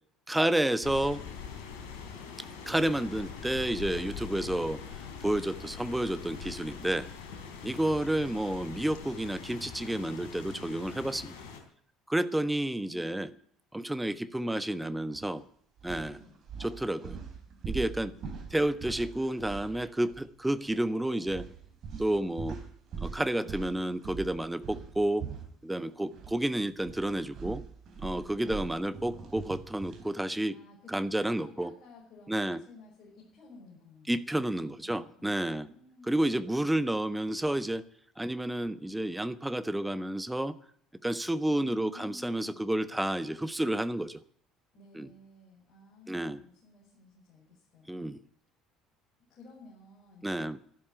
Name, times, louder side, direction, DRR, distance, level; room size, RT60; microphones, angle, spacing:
voice 1, 0.3-1.2 2.7-4.8 5.2-7.1 7.6-11.3 12.1-13.3 13.7-15.4 15.8-16.2 16.6-17.2 17.6-18.1 18.5-21.5 22.0-22.6 23.0-25.3 25.6-27.6 28.0-30.6 30.9-31.7 32.3-32.6 34.1-35.7 36.0-37.8 38.2-40.6 41.0-44.2 44.9-45.1 46.1-46.4 47.9-48.2 50.2-50.6, right 1 dB, 5° right, 13 dB, 1.1 m, -30 dB
Rain, 0.8-11.6, left 6 dB, 65° left, 3.3 m, -43 dB
voice 2, 7.5-7.8 12.3-13.3 16.1-16.4 18.0-18.6 28.3-29.4 30.3-34.1 34.5-36.4 41.4-42.7 44.7-48.0 49.3-50.4, left 3 dB, 45° left, -3 dB, 5.9 m, -54 dB
sound 1, 15.1-15.3 15.8-20.3 20.5-20.7 21.3-26.4 26.7-30.1, right 5 dB, 45° right, 3.6 m, -42 dB
12.5 x 12.5 x 9.2 m, 0.63 s
figure-of-eight pair, 60°, 0 cm